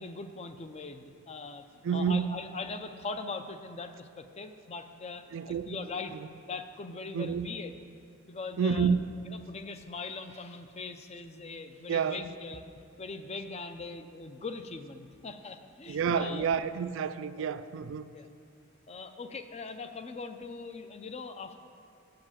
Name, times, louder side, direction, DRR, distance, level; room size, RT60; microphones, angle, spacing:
voice 1, 0.0-6.2 6.4-7.7 8.3-8.9 9.3-12.7 13.0-16.5 17.4-17.5 18.1-18.3 18.9-21.6, left 4 dB, 30° left, 0.5 m, -41 dB
voice 2, 1.8-2.3 5.3-5.8 7.1-7.5 8.6-9.0 11.9-12.2 15.9-18.1, right 6 dB, 65° right, 0.4 m, -29 dB
7.7 x 7.1 x 7.3 m
head